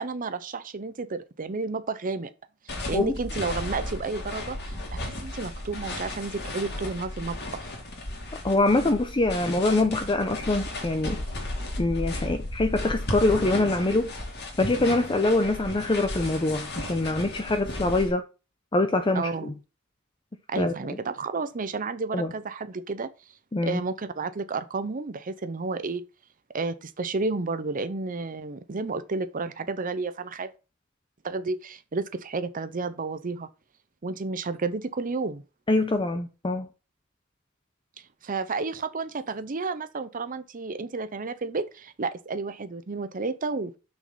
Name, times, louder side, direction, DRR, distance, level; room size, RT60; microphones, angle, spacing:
voice 1, 0.0-2.3 2.7-7.7 19.1-19.5 20.5-23.1 23.6-26.0 26.5-30.5 31.2-33.5 34.0-35.4 38.2-43.7, right 3 dB, 40° right, 0.6 m, -31 dB
sound 1, 2.7-18.1, left 1 dB, 55° left, 2.6 m, -35 dB
voice 2, 8.4-11.2 11.8-14.1 14.6-18.2 18.7-19.5 20.6-20.7 22.1-22.3 23.5-23.8 35.7-36.7, left 2 dB, 25° left, 0.7 m, -24 dB
6.3 x 6.1 x 5.5 m
head